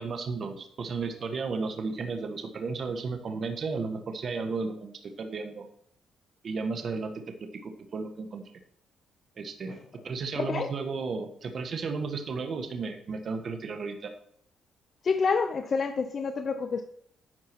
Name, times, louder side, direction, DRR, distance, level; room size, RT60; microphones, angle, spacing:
voice 1, 0.0-5.6 6.4-7.1 7.6-8.4 9.4-9.8 10.0-14.1, right 4 dB, 50° right, 1.4 m, -33 dB
voice 2, 10.4-10.7 15.0-16.9, left 5 dB, 50° left, 0.7 m, -28 dB
11.0 x 4.7 x 5.9 m
cardioid pair, 90°, 0 cm